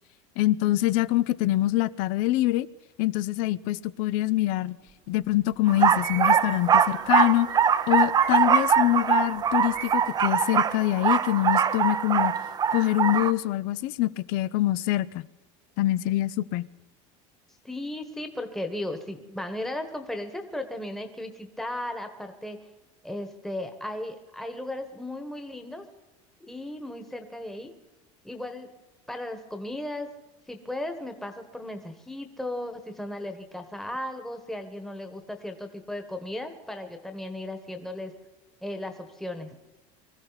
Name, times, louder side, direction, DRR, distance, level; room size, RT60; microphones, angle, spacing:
voice 1, 0.4-2.7 3.0-4.8 5.1-7.5 7.9-12.4 12.7-15.2 15.8-16.7, left 15 dB, 65° left, 0.6 m, -25 dB
sound 1, 4.9-5.0 5.3-10.0, right 9 dB, 65° right, 1.2 m, -40 dB
sound 2, 5.7-13.3, right 7 dB, 25° right, 0.5 m, -23 dB
voice 2, 17.6-22.6 23.0-25.9 26.4-27.7 28.2-28.7 29.1-30.1 30.5-38.1 38.6-39.5, left 1 dB, ahead, 1.3 m, -36 dB
24.0 x 15.0 x 4.1 m
supercardioid pair, 125°, 16 cm